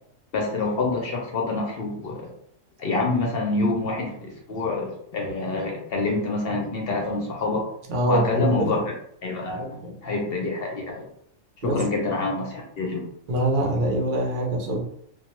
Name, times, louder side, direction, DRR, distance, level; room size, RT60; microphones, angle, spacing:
voice 1, 0.3-2.3 2.8-7.6 8.1-8.9 9.2-11.1 11.6-13.0, left 3 dB, 65° left, -1 dB, 0.6 m, -27 dB
voice 2, 7.9-8.7 9.6-9.9 11.6-11.8 13.3-14.8, right 1 dB, 50° right, 0 dB, 0.6 m, -24 dB
2.2 x 2.1 x 2.9 m, 0.69 s
omnidirectional pair, 1.5 m